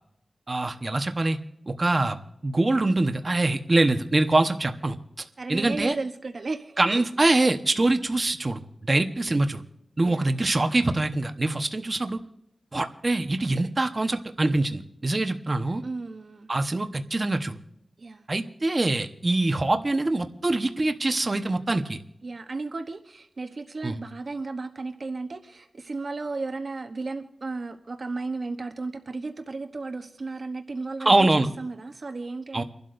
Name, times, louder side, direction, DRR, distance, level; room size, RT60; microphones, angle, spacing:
voice 1, 0.5-1.4 1.7-5.0 5.5-5.9 6.8-9.6 10.0-12.2 12.7-15.8 16.5-17.6 18.3-22.0 23.8-24.0 31.0-31.5 32.5-32.6, right 2 dB, 45° right, 7 dB, 1.1 m, -24 dB
voice 2, 5.4-7.0 10.0-10.3 15.1-15.4 15.8-16.5 18.0-18.3 22.2-32.6, right 3 dB, 65° right, 6 dB, 0.9 m, -34 dB
30.0 x 12.0 x 2.6 m, 0.81 s
cardioid pair, 50°, 0 cm